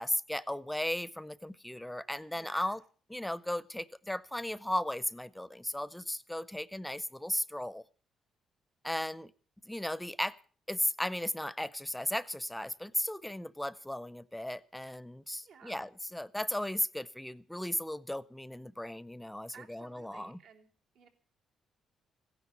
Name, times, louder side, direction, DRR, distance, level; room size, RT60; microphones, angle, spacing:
voice 1, 0.0-2.8 3.1-7.8 8.8-9.3 9.7-10.4 10.7-20.4, left 1 dB, 5° left, 18 dB, 0.7 m, -36 dB
voice 2, 2.3-2.7 15.4-15.8 19.5-20.7 20.9-21.1, right 6 dB, 85° right, 0 dB, 3.2 m, -55 dB
16.0 x 11.0 x 7.0 m, 0.42 s
cardioid pair, 90°, 0 cm